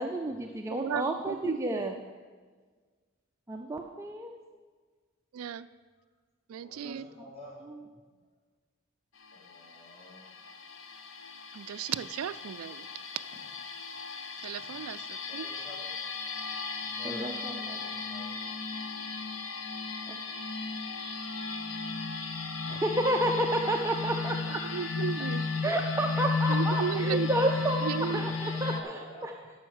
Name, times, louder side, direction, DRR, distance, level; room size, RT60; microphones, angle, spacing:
voice 1, 0.0-1.9 3.5-4.3 6.8-7.0 17.0-17.8 20.1-20.2 22.7-24.6 25.6-29.3, right 1 dB, 15° right, 3 dB, 0.4 m, -31 dB
voice 2, 0.7-2.0 5.3-5.7 6.5-7.1 11.5-12.9 14.4-15.5 24.6-25.4 26.5-27.3 27.8-28.3, right 8 dB, 85° right, 15 dB, 0.3 m, -35 dB
voice 3, 6.6-7.6 9.3-10.2 15.3-15.8 16.8-18.3 25.1-25.8 26.6-27.1 28.5-29.3, equal, 25° left, -4 dB, 2.6 m, -50 dB
sound 1, 9.2-28.8, left 4 dB, 70° left, 0.9 m, -35 dB
12.0 x 6.3 x 6.4 m, 1.5 s
head